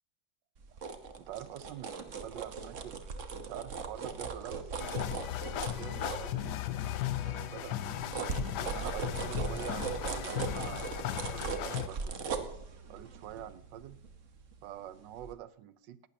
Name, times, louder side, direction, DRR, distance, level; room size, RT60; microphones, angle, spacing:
sound 1, 0.6-6.8 7.3-14.8 15.2-15.3, right 5 dB, 45° right, 1.3 m, -39 dB
voice 1, 0.7-3.0 3.4-5.0 5.5-6.6 7.0-12.5 12.9-14.0 14.6-16.0, right 11 dB, 75° right, 15 dB, 1.4 m, -46 dB
sound 2, 4.8-11.9, left 12 dB, 70° left, 1.2 m, -36 dB
18.5 x 12.0 x 2.8 m, 0.75 s
omnidirectional pair, 2.0 m